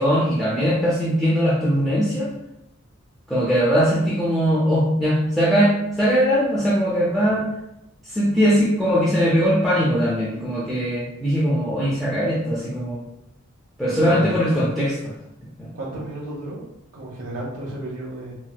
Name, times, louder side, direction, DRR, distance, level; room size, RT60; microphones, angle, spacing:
voice 1, 0.0-2.3 3.3-7.5 8.1-13.0 13.8-15.1 15.4-15.7, equal, ahead, -8 dB, 0.4 m, -20 dB
voice 2, 13.9-14.3 15.7-16.6 16.9-18.3, right 1 dB, 85° right, -6 dB, 0.7 m, -32 dB
4.1 x 2.0 x 2.2 m, 0.87 s
head